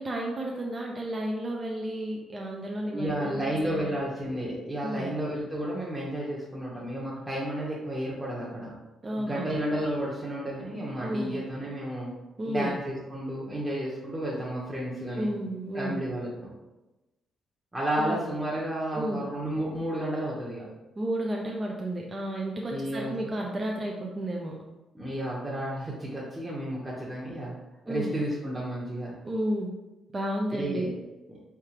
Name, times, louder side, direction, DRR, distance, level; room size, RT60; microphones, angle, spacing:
voice 1, 0.0-3.8 4.8-5.1 9.0-9.5 11.0-11.3 12.4-12.8 15.1-16.0 18.0-18.2 18.9-19.2 21.0-24.5 27.9-28.1 29.2-29.7 30.1-30.9, right 1 dB, 30° right, -1 dB, 0.6 m, -32 dB
voice 2, 2.9-8.7 9.2-12.1 12.5-15.3 15.7-16.5 17.7-20.7 22.7-23.1 24.9-27.5 27.8-29.1 30.5-30.9 31.3-31.4, right 1 dB, 15° right, -7 dB, 1.1 m, -32 dB
4.6 x 3.5 x 2.9 m, 1.0 s
cardioid pair, 90°, 0 cm